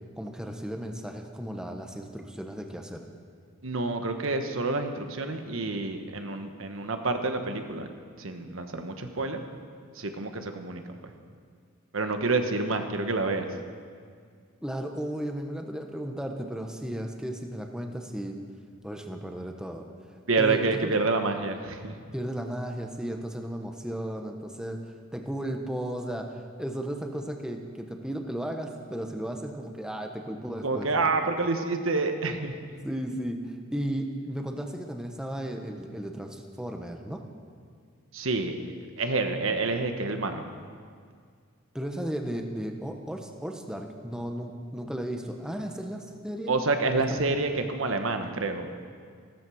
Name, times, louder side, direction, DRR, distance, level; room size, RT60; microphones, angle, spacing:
voice 1, 0.2-3.1 14.6-18.4 18.8-19.9 20.4-21.0 22.1-30.9 32.8-37.2 41.7-46.5 47.1-47.2, right 1 dB, 5° right, 3 dB, 1.1 m, -35 dB
voice 2, 3.6-7.9 8.2-9.4 9.9-10.8 11.9-13.5 20.3-21.9 30.6-32.6 38.1-38.6 39.0-40.4 46.5-48.7, right 3 dB, 75° right, 6 dB, 1.2 m, -28 dB
15.0 x 13.5 x 6.3 m, 2.1 s
head